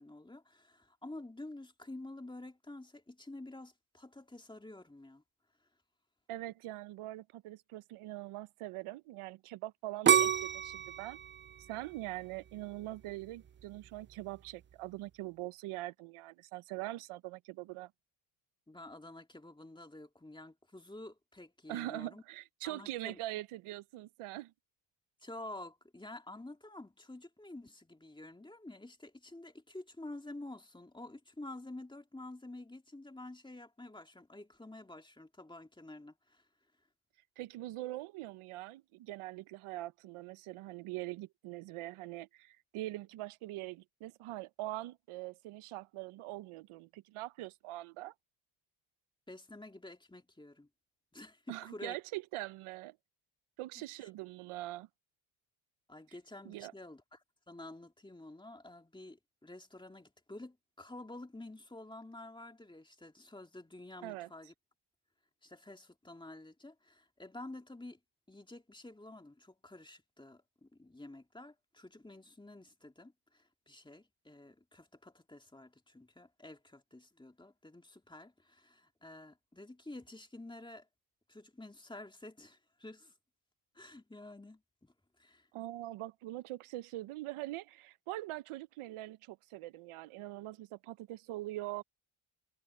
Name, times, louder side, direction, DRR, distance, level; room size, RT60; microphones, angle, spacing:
voice 1, 0.0-5.2 18.7-22.2 22.6-23.2 25.2-36.4 49.3-50.7 51.1-52.0 53.8-54.1 55.9-57.2 57.5-64.5 65.4-68.0 68.3-80.9 81.3-83.1 83.7-85.5, left 2 dB, 10° left, 2.4 m, -50 dB
voice 2, 6.3-11.2 11.7-17.9 21.7-24.5 37.4-48.1 51.5-53.0 53.6-54.9 56.4-56.7 64.0-64.3 85.5-91.8, right 17 dB, 85° right, 0.8 m, -43 dB
sound 1, 10.1-13.0 13.5-14.0, right 8 dB, 25° right, 0.3 m, -29 dB
cardioid pair, 95°, 50 cm